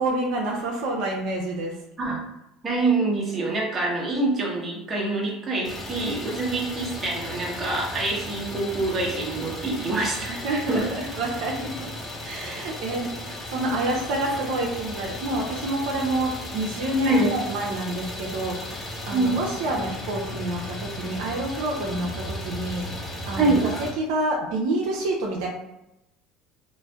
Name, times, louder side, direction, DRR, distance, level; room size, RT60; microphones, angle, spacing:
voice 1, 0.0-1.8 10.3-11.9 12.2-25.5, right 1 dB, 70° right, -1 dB, 0.6 m, -28 dB
voice 2, 2.6-10.3 10.7-10.8 17.0-17.3 19.1-19.4 23.4-23.6, right 3 dB, 25° right, -3 dB, 1.0 m, -25 dB
Idling, 5.6-23.9, left 1 dB, 20° left, 1.2 m, -36 dB
3.1 x 2.5 x 2.3 m, 0.88 s
supercardioid pair, 95°, 0 cm